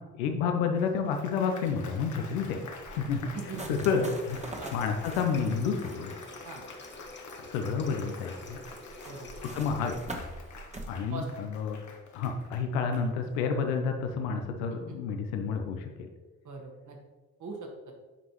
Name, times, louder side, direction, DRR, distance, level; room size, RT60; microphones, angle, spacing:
voice 1, 0.2-3.2 3.7-4.4 4.7-6.1 7.5-8.6 9.5-10.0 10.9-11.8 12.1-16.1, left 5 dB, 85° left, 5 dB, 0.7 m, -30 dB
Applause, 0.8-13.5, left 4 dB, 50° left, 1.2 m, -48 dB
sound 1, 1.6-10.9, right 1 dB, 20° right, 1.2 m, -45 dB
voice 2, 3.3-3.8 4.6-4.7 6.4-6.6 9.0-9.3 11.1-11.3 14.9-15.0 16.4-17.0 17.4-17.9, right 4 dB, 55° right, 1 dB, 1.7 m, -40 dB
Water tap faucet, 3.4-10.0, left 2 dB, 30° left, 1.4 m, -49 dB
8.6 x 5.4 x 3.1 m, 1.2 s
hypercardioid pair, 40°, 36 cm